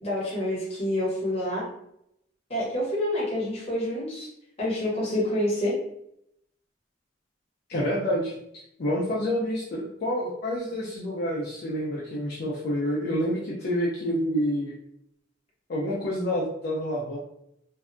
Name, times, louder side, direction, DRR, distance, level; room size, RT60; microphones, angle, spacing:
voice 1, 0.0-1.6 2.5-4.3 4.6-5.7, left 1 dB, 35° left, -5 dB, 1.0 m, -27 dB
voice 2, 7.7-8.3 8.8-14.7 15.7-17.2, equal, 60° left, -5 dB, 0.5 m, -28 dB
2.6 x 2.2 x 2.4 m, 0.75 s
head